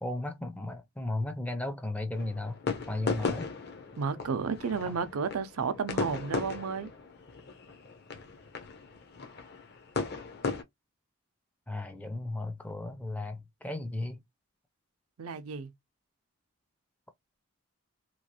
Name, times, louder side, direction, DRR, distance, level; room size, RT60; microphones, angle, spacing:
voice 1, 0.0-2.6 2.9-3.5 4.9-5.0 11.7-14.2, left 2 dB, 5° left, 0.4 m, -35 dB
sound 1, 2.1-10.6, left 4 dB, 50° left, 0.6 m, -37 dB
voice 2, 4.0-6.9 15.2-15.7, right 5 dB, 90° right, 0.5 m, -32 dB
3.0 x 2.3 x 2.8 m
head